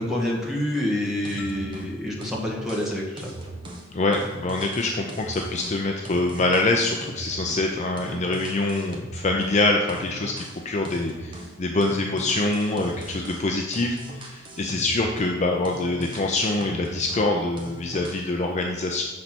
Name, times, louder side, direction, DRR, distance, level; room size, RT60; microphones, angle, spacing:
voice 1, 0.0-3.3, left 1 dB, ahead, -4 dB, 1.7 m, -27 dB
sound 1, 1.3-1.9 2.2-7.7 8.0-9.6 9.9-11.6 11.8-15.4 15.7-17.3 17.6-18.3, right 1 dB, 25° right, 1.1 m, -39 dB
sound 2, 1.4-4.0, left 6 dB, 75° left, 1.4 m, -45 dB
voice 2, 3.9-10.3 10.6-14.0 14.2-19.0, left 2 dB, 35° left, 2 dB, 0.5 m, -25 dB
6.6 x 4.2 x 6.0 m, 1.2 s
head